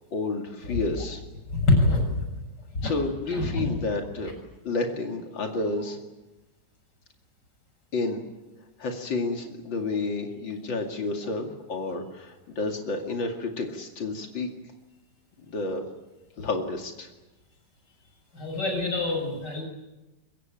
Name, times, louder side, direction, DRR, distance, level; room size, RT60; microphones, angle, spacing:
voice 1, 0.1-1.2 2.8-4.3 4.6-6.0 7.9-8.2 8.8-14.5 15.5-15.8 16.4-17.1, left 3 dB, 90° left, 3 dB, 3.1 m, -30 dB
voice 2, 1.5-2.3 2.7-2.9 3.3-3.8 18.3-19.6, left 2 dB, 65° left, 3 dB, 7.4 m, -25 dB
24.5 x 22.5 x 9.1 m, 1.0 s
omnidirectional pair, 2.0 m